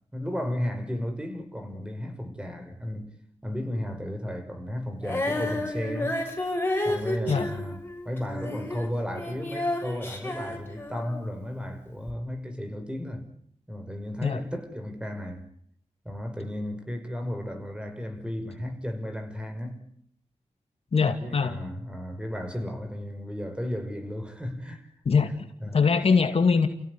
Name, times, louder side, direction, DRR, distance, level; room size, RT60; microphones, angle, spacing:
voice 1, 0.1-3.1 3.4-6.3 6.8-13.3 13.7-15.4 16.0-19.9 21.1-24.9 25.6-25.8, equal, 10° right, 5.9 m, -34 dB
Female singing, 5.0-11.4 12.1-12.2, left 1 dB, 20° left, 7.2 m, -31 dB
voice 2, 20.9-21.6 25.1-25.5 25.7-26.7, left 5 dB, 60° left, 2.3 m, -22 dB
30.0 x 16.5 x 9.7 m
cardioid pair, 75°, 12 cm